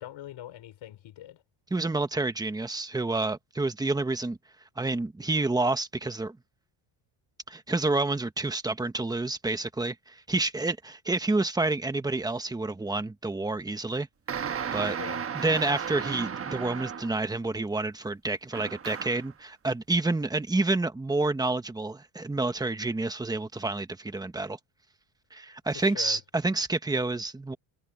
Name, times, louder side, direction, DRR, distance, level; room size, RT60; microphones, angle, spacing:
voice 1, 0.0-1.4 14.8-15.2 25.7-26.2, left 12 dB, 65° left, 4.8 m, -42 dB
voice 2, 1.7-4.4 4.8-6.4 7.5-14.1 14.7-15.0 15.3-24.6 25.3-27.6, right 2 dB, 10° right, 1.1 m, -29 dB
sound 1, 14.3-17.3 18.5-19.3, right 7 dB, 25° right, 1.1 m, -34 dB
cardioid pair, 160°, 50 cm